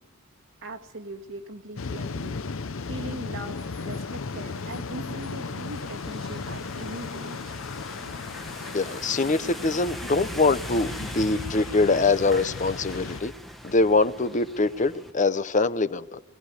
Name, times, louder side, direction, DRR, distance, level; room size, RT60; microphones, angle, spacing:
voice 1, 0.6-7.5, right 1 dB, 80° right, 2 dB, 2.2 m, -40 dB
sound 1, 1.8-13.2, left 4 dB, 85° left, 0.7 m, -36 dB
sound 2, 2.9-15.1, equal, ahead, 1.4 m, -42 dB
voice 2, 8.7-13.3 13.6-16.2, left 3 dB, 40° left, 13 dB, 0.8 m, -23 dB
21.0 x 17.0 x 9.7 m, 1.0 s
head